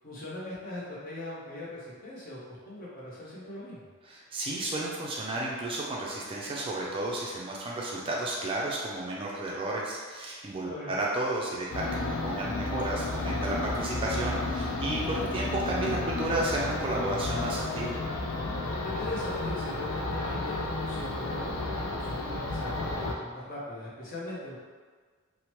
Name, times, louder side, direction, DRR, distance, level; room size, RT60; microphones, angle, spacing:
voice 1, 0.0-3.9 10.6-11.0 18.8-24.6, left 1 dB, 45° left, -7 dB, 0.8 m, -40 dB
voice 2, 4.1-17.9, right 1 dB, 25° right, -3 dB, 0.3 m, -32 dB
sound 1, 11.7-23.1, left 2 dB, 60° left, 0.4 m, -32 dB
2.9 x 2.1 x 2.9 m, 1.6 s
head